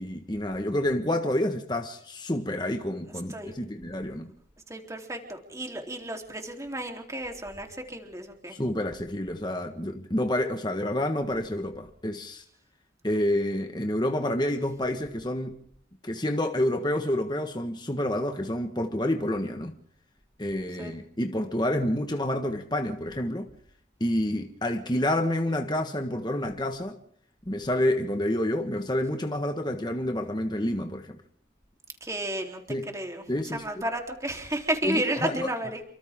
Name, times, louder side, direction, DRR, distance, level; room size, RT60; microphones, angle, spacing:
voice 1, 0.0-4.3 8.5-12.4 13.0-15.6 16.0-19.7 20.4-23.5 24.0-27.0 27.5-31.2 32.7-32.9 33.3-33.9 34.8-35.5, left 1 dB, 25° left, 1.5 m, -28 dB
voice 2, 4.7-8.6 20.8-20.9 32.0-32.6 32.9-33.2 33.5-35.8, right 1 dB, 15° right, 3.6 m, -32 dB
29.5 x 25.0 x 3.7 m
head